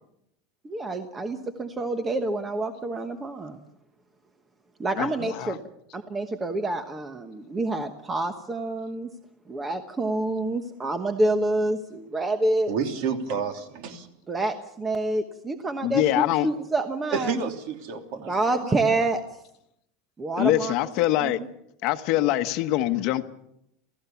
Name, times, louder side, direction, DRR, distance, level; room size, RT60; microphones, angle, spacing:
voice 1, 0.6-3.6 4.8-5.6 5.9-9.1 9.5-12.7 14.3-17.4 18.2-19.2 20.2-20.7 21.2-21.3, right 2 dB, 10° right, 7 dB, 1.1 m, -27 dB
voice 2, 5.0-5.6 15.8-16.5 20.4-21.4 21.8-23.2, left 14 dB, 45° left, 9 dB, 1.2 m, -24 dB
voice 3, 12.7-14.1 17.1-18.3 18.6-18.7, right 6 dB, 50° right, 5 dB, 3.1 m, -30 dB
28.0 x 16.0 x 7.1 m, 0.79 s
supercardioid pair, 175°, 0 cm